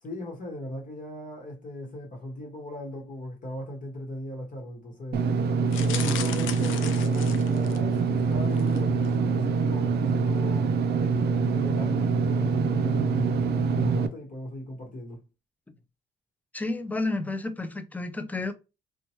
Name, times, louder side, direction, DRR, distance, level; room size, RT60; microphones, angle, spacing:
voice 1, 0.0-5.2 5.7-10.7 11.5-15.2, left 1 dB, 40° left, 1.1 m, -39 dB
Engine / Mechanisms, 5.1-14.1, right 4 dB, 55° right, 0.4 m, -25 dB
sound 1, 5.7-8.0 8.5-8.8 9.0-9.1, left 9 dB, 75° left, 0.5 m, -37 dB
voice 2, 16.5-18.5, left 2 dB, 10° left, 0.4 m, -31 dB
2.9 x 2.2 x 2.9 m
cardioid pair, 90°, 20 cm